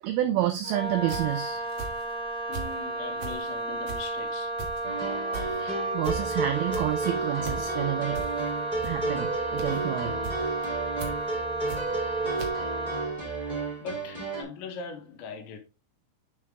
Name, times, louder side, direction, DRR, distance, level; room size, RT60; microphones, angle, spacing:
voice 1, 0.0-1.7 5.6-8.2 8.8-10.2, right 13 dB, 85° right, 2.1 m, -29 dB
Wind instrument woodwind instrument, 0.6-13.1, right 2 dB, 45° right, 1.0 m, -33 dB
sound 1, 1.0-2.8 3.1-12.1 12.4-12.5, right 5 dB, 65° right, 1.9 m, -39 dB
voice 2, 2.5-4.6 10.1-10.3 13.8-15.6, left 5 dB, 85° left, 3.4 m, -40 dB
sound 2, 4.8-14.4, right 3 dB, 25° right, 1.1 m, -33 dB
9.5 x 3.5 x 3.5 m
omnidirectional pair, 5.1 m